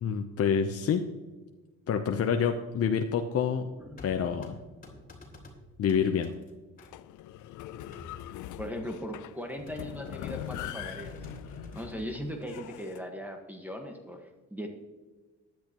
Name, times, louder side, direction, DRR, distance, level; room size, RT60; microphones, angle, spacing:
voice 1, 0.0-1.1 1.9-3.7 4.0-4.6 5.8-6.3, left 7 dB, 50° left, 5 dB, 0.8 m, -27 dB
sound 1, 3.8-6.9 7.7-8.8 9.7-12.3, left 1 dB, 30° left, 3.2 m, -48 dB
sound 2, 6.8-13.0, left 13 dB, 80° left, 0.5 m, -42 dB
voice 2, 8.6-11.1 11.7-14.7, equal, 5° right, 3 dB, 1.5 m, -38 dB
14.5 x 10.5 x 3.0 m, 1.3 s
cardioid pair, 90°, 30 cm